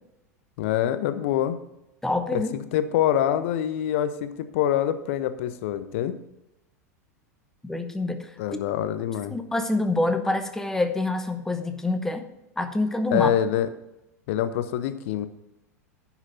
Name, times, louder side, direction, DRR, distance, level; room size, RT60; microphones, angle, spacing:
voice 1, 0.6-1.6 2.3-6.1 8.4-9.4 13.1-13.7 14.3-15.3, left 10 dB, 50° left, 12 dB, 0.8 m, -25 dB
voice 2, 2.0-2.5 7.6-8.6 9.3-12.2 12.6-13.3, left 2 dB, 5° left, 7 dB, 0.9 m, -26 dB
9.8 x 6.0 x 5.7 m, 0.91 s
figure-of-eight pair, 85°, 9 cm